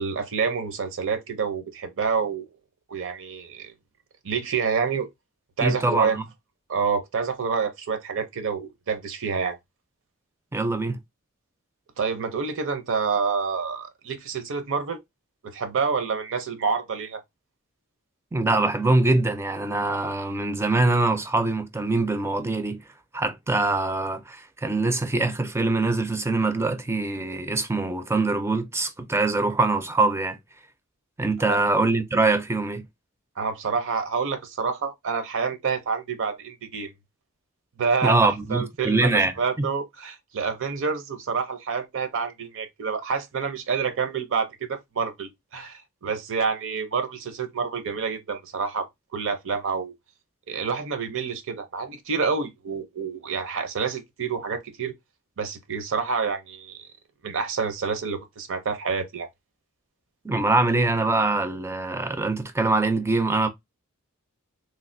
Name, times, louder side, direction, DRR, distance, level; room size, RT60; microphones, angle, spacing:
voice 1, 0.0-2.5 2.9-3.7 4.2-5.1 5.6-6.2 6.7-9.6 12.0-15.0 15.4-17.2 31.5-31.6 33.4-36.9 37.8-48.9 49.1-49.9 50.5-54.9 55.4-56.9 57.2-59.3, right 5 dB, 60° right, 0.6 m, -28 dB
voice 2, 5.6-6.2 10.5-11.0 18.3-22.8 23.1-30.4 31.2-32.8 38.0-39.3 60.2-63.5, right 2 dB, 10° right, 0.3 m, -23 dB
3.2 x 2.4 x 2.5 m
head